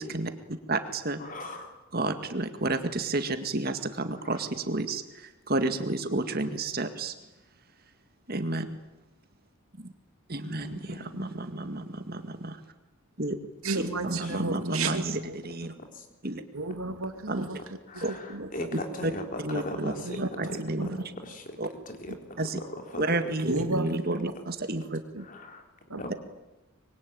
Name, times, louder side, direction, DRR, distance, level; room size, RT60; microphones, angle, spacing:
voice 1, 0.0-1.2 1.5-1.6 1.9-7.1 8.3-8.7 9.8-9.9 10.3-12.6 13.2-13.4 13.8-15.2 15.4-15.7 16.2-16.4 17.3-17.5 18.0-18.1 19.0-19.1 19.4-19.9 20.2-20.9 21.6-21.7 22.4-22.6 22.9-25.0 26.1-26.2, right 2 dB, 45° right, 8 dB, 2.0 m, -31 dB
voice 2, 1.2-1.8 10.6-11.3 13.7-13.8 17.9-20.2 20.5-20.6 21.2-21.4 22.0-22.1 22.9-23.3 25.3-25.6 25.9-26.2, left 1 dB, 40° left, 5 dB, 3.8 m, -38 dB
voice 3, 13.6-15.4 16.5-18.7 20.0-21.0 23.5-24.2 25.1-25.3 25.9-26.0, right 3 dB, 80° right, 7 dB, 2.8 m, -33 dB
25.5 x 23.0 x 9.4 m, 0.99 s
head